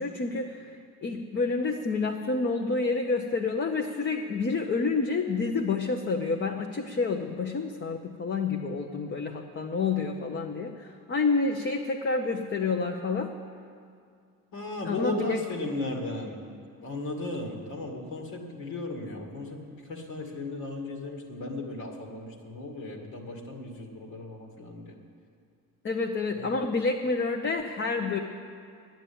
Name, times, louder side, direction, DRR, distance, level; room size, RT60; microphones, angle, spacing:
voice 1, 0.0-13.4 14.8-15.4 25.8-28.2, left 4 dB, 30° left, 3 dB, 0.9 m, -29 dB
voice 2, 14.5-16.4 16.8-25.0 26.3-26.5, left 2 dB, 75° left, 1 dB, 2.4 m, -36 dB
11.0 x 9.2 x 8.8 m, 2.3 s
cardioid pair, 95°, 37 cm